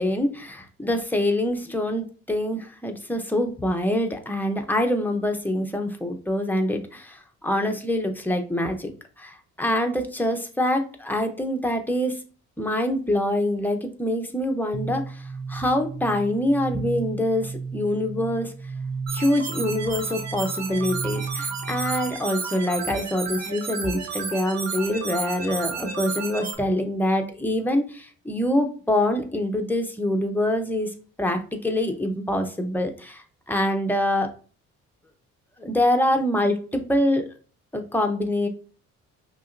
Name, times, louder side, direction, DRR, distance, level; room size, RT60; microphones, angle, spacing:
voice 1, 0.0-8.9 9.2-12.2 12.6-18.5 19.1-30.9 31.2-34.3 35.6-37.3 37.7-38.5, left 1 dB, 5° left, 4 dB, 0.8 m, -25 dB
sound 1, 14.7-22.3, right 5 dB, 30° right, 0.5 m, -34 dB
sound 2, 19.1-26.5, right 5 dB, 60° right, 1.0 m, -32 dB
5.4 x 3.0 x 2.6 m, 0.39 s
cardioid pair, 90°, 30 cm